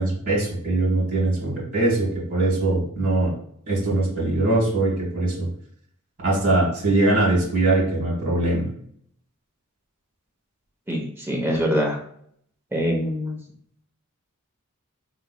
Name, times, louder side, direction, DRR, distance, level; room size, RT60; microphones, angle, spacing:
voice 1, 0.0-3.3 3.7-5.5 6.2-8.6, right 2 dB, 40° right, -4 dB, 1.4 m, -22 dB
voice 2, 10.9-12.0 12.7-13.3, equal, 10° right, -1 dB, 0.7 m, -24 dB
3.9 x 3.0 x 2.2 m, 0.65 s
head